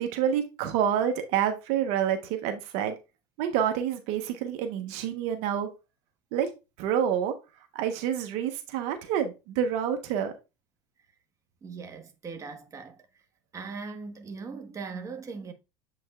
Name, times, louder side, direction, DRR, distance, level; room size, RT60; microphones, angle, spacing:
voice 1, 0.0-2.9 3.4-5.7 6.3-6.5 6.8-7.3 7.7-10.3, right 9 dB, 65° right, 1.1 m, -28 dB
voice 2, 11.6-13.1 13.5-15.5, right 4 dB, 25° right, 1.3 m, -39 dB
7.7 x 5.3 x 2.4 m
supercardioid pair, 95°, 11 cm